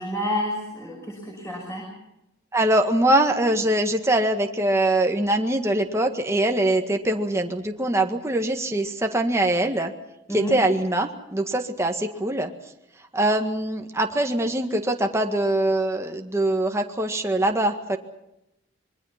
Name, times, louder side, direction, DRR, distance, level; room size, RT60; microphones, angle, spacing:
voice 1, 0.0-1.8 10.3-10.6, left 1 dB, 15° left, -1 dB, 6.2 m, -29 dB
voice 2, 2.5-9.9 10.3-12.5 13.1-18.0, right 1 dB, 15° right, 4 dB, 1.8 m, -23 dB
26.0 x 23.0 x 5.9 m, 0.87 s
head